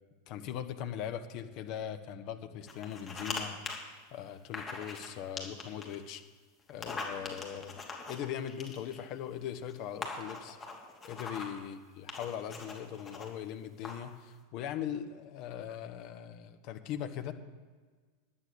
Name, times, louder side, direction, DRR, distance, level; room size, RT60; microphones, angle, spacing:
voice 1, 0.3-6.2 6.7-7.8 8.1-10.6 11.0-17.3, left 9 dB, 45° left, 8 dB, 1.2 m, -40 dB
sound 1, 2.7-3.4 3.6-3.8 4.5-5.1 5.4-5.9 6.7-9.0 9.7-9.8 10.0-11.6 12.1-13.3 13.8-14.1, left 4 dB, 25° left, 2.8 m, -41 dB
11.5 x 8.9 x 7.1 m, 1.4 s
figure-of-eight pair, 85°, 0 cm